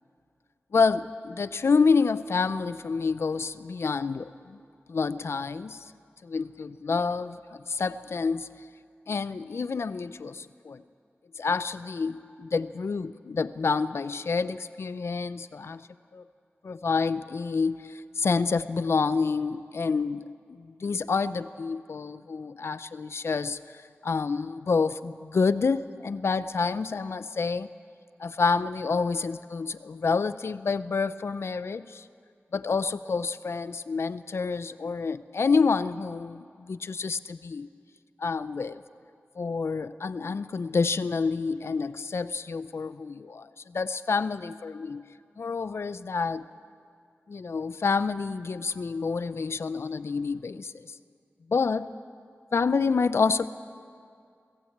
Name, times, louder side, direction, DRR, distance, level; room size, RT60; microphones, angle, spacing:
voice 1, 0.7-4.6 4.9-5.8 6.2-8.5 9.1-10.8 11.4-15.8 16.1-16.2 16.6-23.6 24.0-27.7 28.2-32.0 32.5-37.7 38.2-38.8 39.4-45.0 45.4-46.4 47.3-50.9 51.5-51.9 52.5-53.5, left 4 dB, 75° left, 14 dB, 0.6 m, -28 dB
22.5 x 15.0 x 8.6 m, 2.3 s
wide cardioid pair, 95°, 4 cm